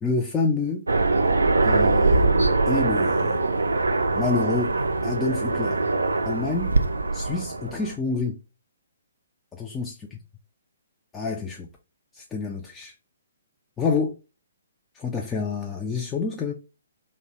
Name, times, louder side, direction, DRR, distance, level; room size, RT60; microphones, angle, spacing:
voice 1, 0.0-0.8 1.6-3.5 4.1-4.7 5.0-5.8 6.3-6.8 7.1-8.4 9.5-9.9 11.1-11.7 12.1-12.9 13.8-14.2 14.9-16.5, left 4 dB, 15° left, 0.3 m, -28 dB
Aircraft, 0.9-7.9, right 3 dB, 75° right, 0.3 m, -22 dB
2.6 x 2.0 x 2.8 m
figure-of-eight pair, 125°, 0 cm